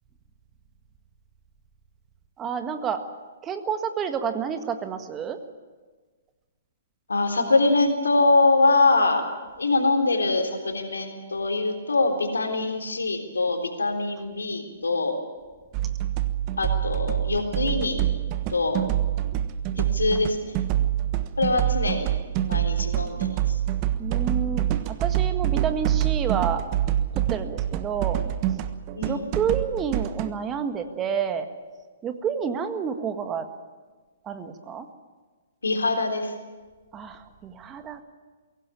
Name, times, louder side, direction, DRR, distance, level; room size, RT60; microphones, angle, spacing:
voice 1, 2.4-3.1 3.4-5.4 24.0-26.6 27.1-28.2 29.0-31.5 32.0-33.5 34.2-34.9 36.9-38.0, right 7 dB, 20° right, 8 dB, 1.7 m, -29 dB
voice 2, 7.1-9.2 9.6-15.2 16.6-18.0 18.5-18.8 19.8-20.6 21.4-22.1 22.5-23.6 29.0-29.3 35.6-36.3, left 3 dB, 85° left, 5 dB, 3.7 m, -23 dB
sound 1, 15.7-30.3, right 12 dB, 35° right, 1.3 m, -26 dB
22.5 x 17.5 x 8.6 m, 1.4 s
hypercardioid pair, 125°, 0 cm